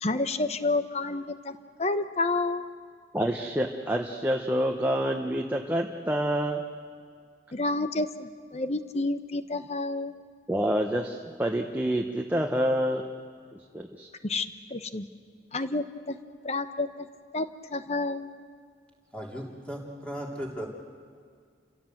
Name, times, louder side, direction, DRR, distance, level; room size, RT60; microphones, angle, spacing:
voice 1, 0.0-1.5 1.8-2.6 7.5-10.1 14.2-15.1 15.5-16.2 16.4-16.9 17.3-18.3, left 2 dB, 35° left, 11 dB, 1.0 m, -29 dB
voice 2, 3.1-6.6 10.5-13.0 13.5-14.1, equal, 10° right, 2 dB, 1.0 m, -27 dB
voice 3, 19.1-20.7, equal, 5° left, -2 dB, 3.4 m, -36 dB
29.5 x 16.5 x 7.9 m, 2.1 s
head